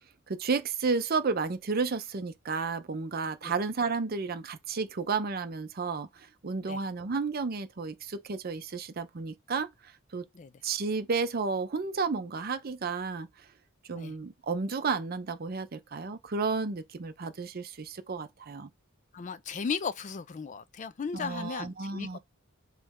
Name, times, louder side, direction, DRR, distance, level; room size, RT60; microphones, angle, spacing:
voice 1, 0.3-10.2 10.6-13.3 13.9-18.7 21.1-22.2, right 4 dB, 50° right, 0.6 m, -32 dB
voice 2, 19.1-22.1, left 5 dB, 40° left, 0.3 m, -36 dB
3.3 x 3.1 x 3.5 m
head